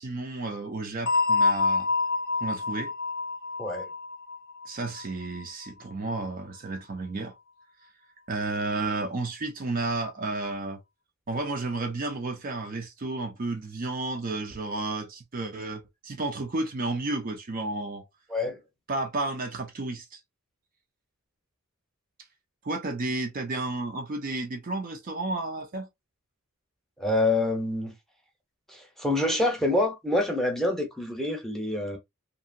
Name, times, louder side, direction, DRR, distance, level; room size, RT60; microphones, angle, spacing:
voice 1, 0.0-1.9 2.4-2.9 4.7-7.3 8.3-10.8 11.3-18.1 18.9-20.2 22.6-25.9, right 2 dB, 40° right, 0.5 m, -32 dB
sound 1, 1.1-5.7, left 4 dB, 55° left, 0.6 m, -27 dB
voice 2, 3.6-3.9 18.3-18.6 27.0-27.9 28.7-32.0, left 2 dB, ahead, 0.8 m, -26 dB
2.8 x 2.6 x 2.6 m
head